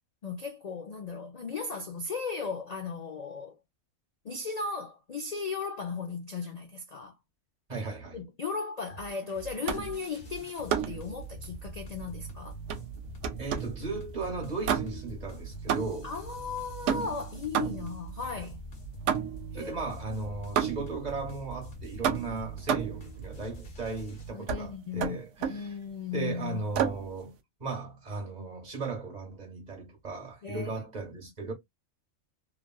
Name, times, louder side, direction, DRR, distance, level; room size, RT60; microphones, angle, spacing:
voice 1, 0.2-3.6 4.2-7.2 8.1-12.5 16.0-18.6 19.5-19.8 24.3-26.6 30.4-30.9, left 5 dB, 65° left, 0.4 m, -36 dB
voice 2, 7.7-8.2 13.4-16.1 19.5-25.6 26.1-31.5, right 3 dB, 30° right, 1.3 m, -37 dB
sound 1, 8.9-24.3, right 3 dB, 45° left, 1.2 m, -43 dB
sound 2, 9.7-10.0 10.7-11.1 12.7-13.8 14.6-15.2 15.7-16.2 16.9-18.0 19.1-19.5 20.6-21.0 22.0-23.1 24.5-24.7 25.0-25.7 26.7-27.1, right 8 dB, 70° right, 0.9 m, -30 dB
3.2 x 2.4 x 2.3 m
omnidirectional pair, 1.4 m